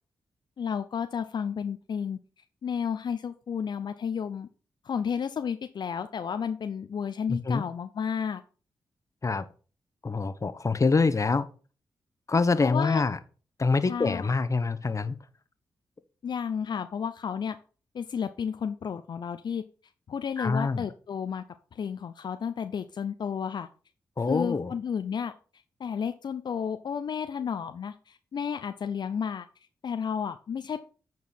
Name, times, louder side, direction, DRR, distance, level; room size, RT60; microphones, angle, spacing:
voice 1, 0.6-2.2 2.6-4.5 4.8-8.4 12.6-13.0 13.9-14.3 16.2-17.6 17.9-19.6 20.1-21.4 21.7-23.7 24.3-25.3 25.8-29.5 29.8-30.8, left 7 dB, 65° left, 0.6 m, -32 dB
voice 2, 7.3-7.6 9.2-9.4 10.0-11.5 12.3-13.2 13.6-15.2 20.4-20.9 24.2-24.7, left 4 dB, 40° left, 1.0 m, -25 dB
8.4 x 4.7 x 5.4 m
supercardioid pair, 40°, 8 cm